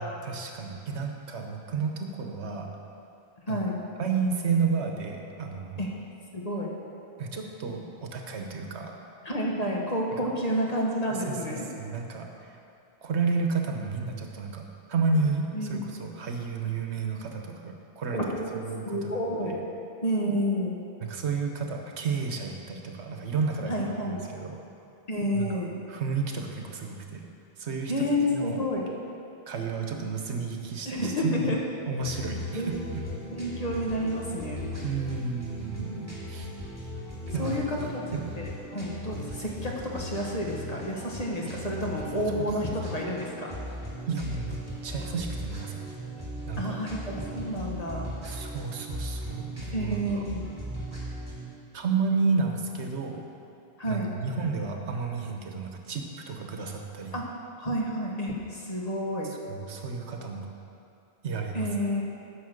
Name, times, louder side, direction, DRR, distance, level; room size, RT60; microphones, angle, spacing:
voice 1, 0.0-2.7 3.5-3.6 4.0-5.8 7.2-9.0 10.2-10.3 11.0-12.3 13.0-14.6 14.9-18.3 18.6-19.5 21.0-24.6 25.3-25.5 25.9-27.3 27.6-27.9 28.3-28.6 29.5-31.6 31.9-32.7 34.8-36.5 37.3-37.6 38.1-38.3 42.4-42.5 44.1-44.6 44.8-45.8 46.5-46.8 48.2-50.2 51.7-53.2 53.9-57.1 59.5-60.5 61.2-61.7, right 4 dB, 80° right, 3 dB, 1.2 m, -31 dB
voice 2, 3.5-3.8 5.8-5.9 6.3-6.7 9.2-11.7 15.5-15.8 18.1-18.5 18.8-19.5 20.0-20.8 23.7-24.2 25.1-25.7 27.9-28.9 30.8-31.6 32.5-32.7 33.3-34.7 37.4-37.8 38.4-43.6 46.6-48.1 49.7-50.4 53.8-54.1 57.1-57.3 57.6-59.3 61.5-62.0, equal, 35° left, -2 dB, 1.3 m, -30 dB
sound 1, 32.0-51.4, equal, 15° right, 2.2 m, -38 dB
9.4 x 6.1 x 6.5 m, 2.6 s
omnidirectional pair, 1.1 m